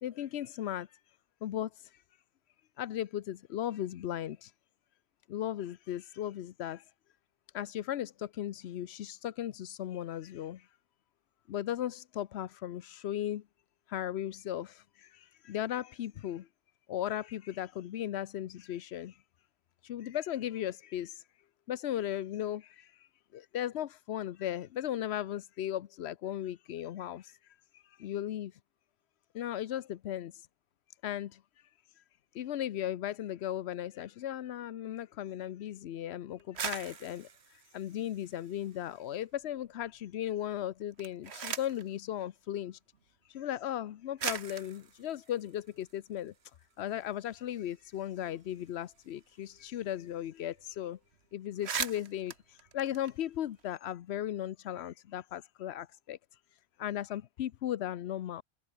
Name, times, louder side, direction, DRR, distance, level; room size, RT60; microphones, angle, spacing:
voice 1, 0.0-0.9 1.4-1.7 2.8-4.5 5.3-6.8 7.5-10.6 11.5-13.4 13.9-14.8 15.1-16.4 16.9-19.1 19.8-21.2 21.7-22.6 23.3-27.3 28.0-28.5 29.3-30.3 31.0-31.3 32.4-37.3 37.7-42.8 43.3-46.3 46.8-51.0 51.3-52.3 52.7-56.2 56.8-58.4, left 11 dB, 90° left, 0.9 m, -36 dB
sound 1, 36.4-39.0 39.3-40.0 40.8-41.9 42.9-43.0 43.8-43.9 44.2-46.5 46.9-47.0 47.2-49.8 50.1-50.2 50.5-50.8 51.1-51.2 51.4-53.7, right 6 dB, 85° right, 1.5 m, -41 dB
open air
omnidirectional pair, 1.1 m